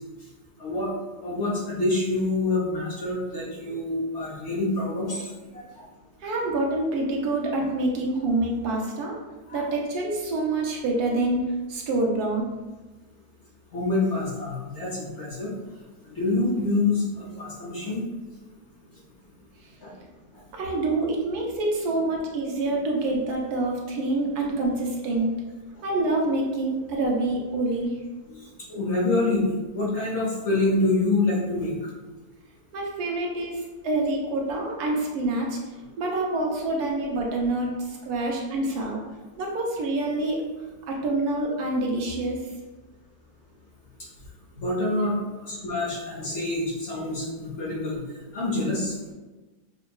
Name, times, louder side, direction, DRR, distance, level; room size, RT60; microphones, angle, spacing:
voice 1, 1.2-5.3 9.5-9.7 13.7-15.5 16.1-18.0 19.8-19.9 28.7-29.5 29.7-31.7 44.6-48.0 48.3-49.1, left 2 dB, 55° left, -5 dB, 0.9 m, -26 dB
voice 2, 6.2-9.2 9.5-12.4 20.5-25.3 25.8-28.0 32.7-35.6 36.0-39.0 39.4-40.4 40.9-42.6, right 2 dB, 75° right, -1 dB, 1.1 m, -26 dB
5.3 x 2.2 x 2.3 m, 1.2 s
omnidirectional pair, 1.7 m